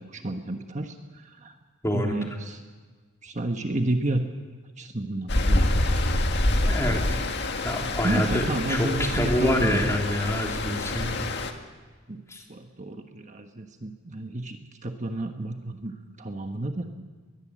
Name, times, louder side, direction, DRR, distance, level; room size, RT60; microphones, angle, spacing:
voice 1, 0.0-1.5 1.9-2.6 3.2-4.2 4.8-5.7 6.6-6.8 8.0-9.9 12.1-12.2 12.5-16.9, right 2 dB, 40° right, 5 dB, 1.4 m, -31 dB
voice 2, 1.8-2.2 6.6-7.2 7.6-11.1 12.3-12.4, left 1 dB, 15° left, 1 dB, 3.3 m, -27 dB
Stream, 5.3-11.5, left 1 dB, 60° left, 1.8 m, -26 dB
21.5 x 21.5 x 7.6 m, 1.5 s
head